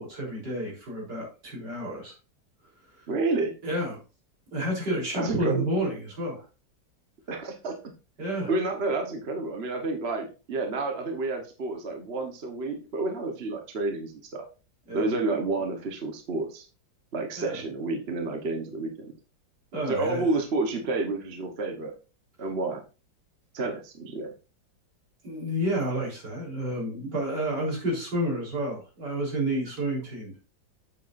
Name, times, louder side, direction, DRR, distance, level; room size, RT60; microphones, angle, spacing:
voice 1, 0.0-2.1 3.0-3.1 3.6-4.0 4.5-6.4 8.2-8.5 14.9-15.1 17.4-17.6 19.7-20.3 25.2-30.3, right 1 dB, 65° right, -3 dB, 4.5 m, -30 dB
voice 2, 3.1-3.5 5.1-5.6 7.3-7.9 8.5-14.4 14.9-16.7 17.1-19.1 19.9-21.9 22.4-22.8 23.5-24.3, right 3 dB, 40° right, 3 dB, 1.2 m, -30 dB
8.5 x 8.1 x 2.6 m, 0.33 s
omnidirectional pair, 2.0 m